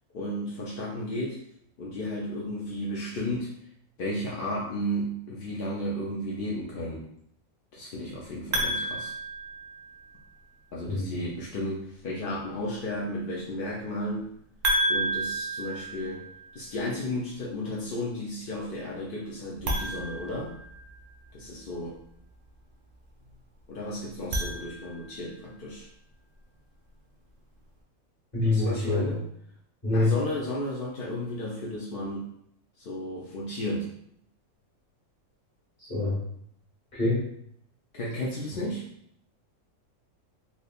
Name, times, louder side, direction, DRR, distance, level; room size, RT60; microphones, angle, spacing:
voice 1, 0.1-1.4 1.8-3.5 4.0-7.0 7.7-9.1 10.7-14.3 14.9-16.3 16.5-20.6 21.3-22.0 23.7-25.9 28.5-29.2 29.9-32.3 32.8-33.9 37.9-38.8, left 1 dB, 60° left, -4 dB, 0.6 m, -33 dB
sound 1, 8.5-10.2 14.6-16.7 19.6-21.2 24.1-25.3, right 1 dB, 65° right, 0.4 m, -31 dB
voice 2, 28.3-29.0 29.8-30.1 35.8-36.2 36.9-37.2, left 2 dB, 30° left, -8 dB, 1.5 m, -25 dB
3.4 x 2.7 x 2.3 m, 0.69 s
omnidirectional pair, 1.4 m